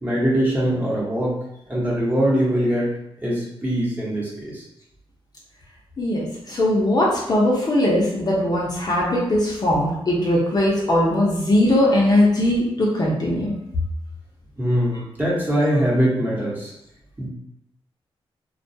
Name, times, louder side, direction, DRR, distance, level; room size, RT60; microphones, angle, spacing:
voice 1, 0.0-1.3 1.7-2.9 3.2-4.6 14.6-16.7 17.2-17.3, equal, 15° right, -7 dB, 0.9 m, -22 dB
voice 2, 6.0-13.5, left 1 dB, 40° left, -4 dB, 0.6 m, -20 dB
2.3 x 2.2 x 2.6 m, 0.82 s
cardioid pair, 90°, 10 cm